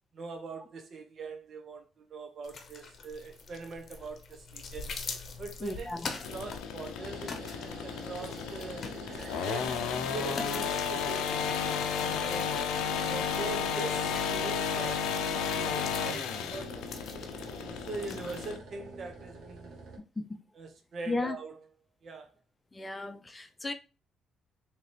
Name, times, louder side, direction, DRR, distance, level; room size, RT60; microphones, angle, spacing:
voice 1, 0.1-4.9 5.4-8.9 9.4-12.6 13.1-15.3 15.6-16.8 17.7-19.8 20.5-21.6 22.0-22.3, right 4 dB, 55° right, 0.9 m, -42 dB
sound 1, 2.4-18.5, left 4 dB, 50° left, 0.8 m, -45 dB
voice 2, 5.6-6.1 20.2-20.4 21.1-21.4 22.7-23.7, left 2 dB, 25° left, 0.6 m, -34 dB
sound 2, 6.2-18.6, left 7 dB, 90° left, 0.5 m, -33 dB
sound 3, 7.0-20.0, right 3 dB, 75° right, 1.2 m, -47 dB
4.0 x 3.0 x 3.2 m
cardioid pair, 75°, 0 cm